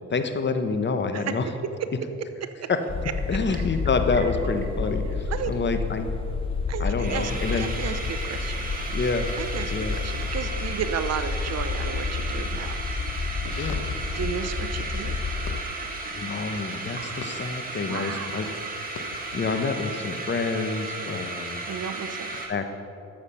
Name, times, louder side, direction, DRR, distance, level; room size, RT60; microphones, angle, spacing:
voice 1, 0.1-1.4 2.7-2.8 3.3-6.1 6.8-7.7 8.9-9.3 9.7-9.9 13.6-13.8 16.1-18.5 19.3-21.6 22.5-22.6, left 4 dB, 35° left, 8 dB, 1.0 m, -27 dB
sound 1, 2.8-2.9 3.2-4.9 5.2-5.3 5.5-5.8 6.0-6.1 6.5-6.6 6.8-22.5, right 3 dB, 30° right, 1.8 m, -35 dB
sound 2, 2.9-15.6, left 4 dB, 20° left, 0.6 m, -30 dB
voice 2, 6.7-8.7 9.4-12.8 14.1-15.2 17.9-18.5 21.7-22.3, right 8 dB, 60° right, 10 dB, 0.8 m, -33 dB
sound 3, 7.8-22.5, left 5 dB, 85° left, 1.1 m, -47 dB
13.0 x 7.4 x 5.6 m, 2.7 s
cardioid pair, 90°, 30 cm